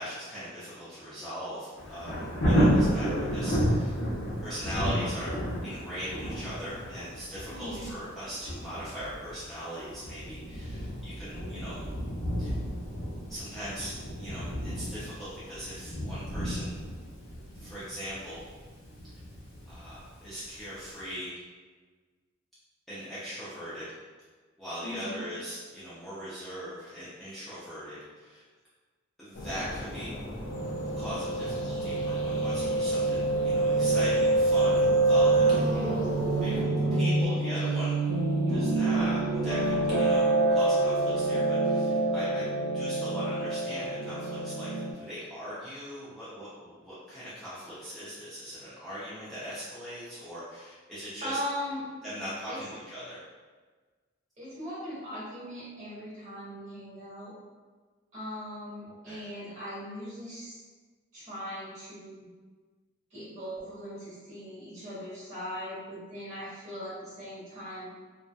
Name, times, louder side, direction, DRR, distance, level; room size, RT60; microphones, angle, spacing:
voice 1, 0.0-3.9 4.4-5.3 5.6-11.8 12.4-12.6 13.3-13.9 14.2-16.8 17.5-18.4 19.7-21.4 22.9-23.9 24.6-28.4 29.2-30.1 31.0-35.6 36.4-37.9 38.5-40.2 40.5-51.4 52.0-53.2 58.8-59.3, equal, ahead, -13 dB, 0.5 m, -40 dB
Thunder, 1.8-20.5 21.0-21.1, equal, 85° left, 0.8 m, -32 dB
voice 2, 7.5-7.9 24.8-25.2 35.5-36.0 51.2-51.8 52.5-52.6 54.4-57.3 58.1-60.6 61.1-62.3 63.1-67.9, equal, 35° right, -12 dB, 1.2 m, -39 dB
sound 1, 29.3-36.6, left 1 dB, 60° left, 0.4 m, -39 dB
Piano, 30.5-44.9, right 2 dB, 70° right, 1.1 m, -26 dB
2.6 x 2.3 x 2.2 m, 1.4 s
head